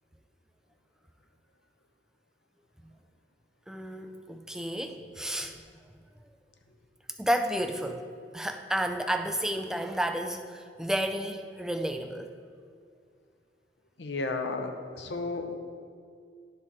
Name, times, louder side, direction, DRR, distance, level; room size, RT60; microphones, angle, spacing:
voice 1, 3.7-5.6 7.2-8.1 8.3-12.3, right 1 dB, 5° right, 6 dB, 0.3 m, -31 dB
voice 2, 14.0-15.5, left 3 dB, 75° left, 4 dB, 0.7 m, -33 dB
11.5 x 4.3 x 3.6 m, 2.2 s
head